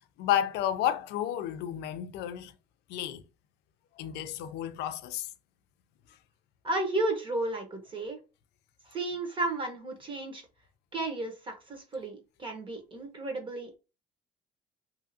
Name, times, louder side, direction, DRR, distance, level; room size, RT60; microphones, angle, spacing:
voice 1, 0.2-2.5 2.9-3.2 4.0-5.3, left 11 dB, 80° left, 0.4 m, -31 dB
voice 2, 6.6-8.2 8.9-10.4 10.9-13.8, right 2 dB, 30° right, 1.0 m, -33 dB
2.7 x 2.4 x 2.7 m
cardioid pair, 110°, 17 cm